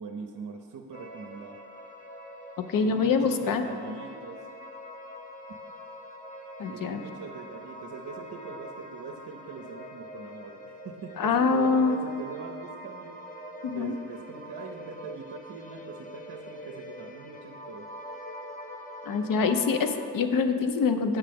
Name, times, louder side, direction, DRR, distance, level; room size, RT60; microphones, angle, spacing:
voice 1, 0.0-1.6 2.8-4.4 6.7-13.2 13.7-17.9, right 4 dB, 50° right, 3 dB, 0.7 m, -42 dB
sound 1, 0.9-20.1, equal, 20° left, 0.8 m, -44 dB
voice 2, 2.7-3.6 6.6-7.0 11.2-12.0 13.6-13.9 19.1-21.2, left 5 dB, 55° left, 8 dB, 0.6 m, -25 dB
7.4 x 5.9 x 3.4 m, 2.4 s
supercardioid pair, 50°, 41 cm